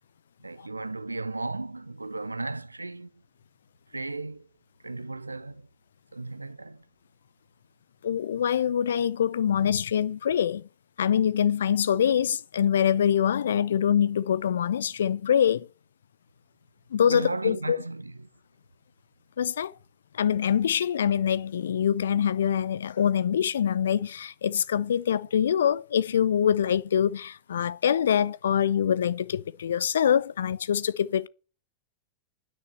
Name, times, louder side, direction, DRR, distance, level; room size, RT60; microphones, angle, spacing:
voice 1, 0.4-3.1 3.9-4.5 4.8-5.7 6.1-6.8 17.1-18.3, right 2 dB, 80° right, 0.6 m, -35 dB
voice 2, 8.0-10.6 11.0-15.6 16.9-17.8 19.4-19.7 20.1-31.3, left 9 dB, 65° left, 0.7 m, -24 dB
9.7 x 9.7 x 6.8 m
figure-of-eight pair, 90°, 0 cm